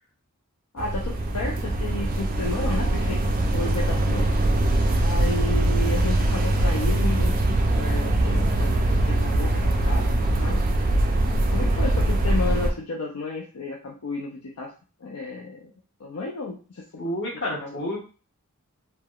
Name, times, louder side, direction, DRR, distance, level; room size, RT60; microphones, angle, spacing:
voice 1, 0.7-4.3 5.0-10.6 11.5-14.7 15.0-15.7 16.0-17.9, left 3 dB, 75° left, -2 dB, 0.5 m, -33 dB
sound 1, 0.8-12.7, right 1 dB, 40° right, 0.3 m, -22 dB
voice 2, 17.0-18.0, left 1 dB, 55° left, -4 dB, 1.3 m, -29 dB
3.3 x 2.1 x 2.3 m, 0.36 s
head